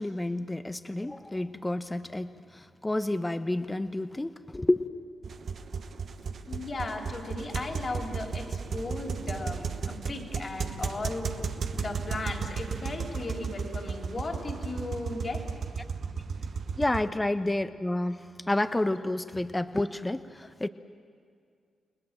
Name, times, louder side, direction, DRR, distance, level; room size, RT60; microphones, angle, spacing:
voice 1, 0.0-4.9 16.8-20.7, left 1 dB, 20° left, 10 dB, 1.0 m, -30 dB
sound 1, 5.2-17.1, right 5 dB, 65° right, 1.1 m, -35 dB
voice 2, 6.4-11.3 11.8-15.4 19.4-19.5, left 2 dB, 45° left, 2 dB, 3.8 m, -36 dB
30.0 x 19.5 x 7.6 m, 2.2 s
supercardioid pair, 45°, 0 cm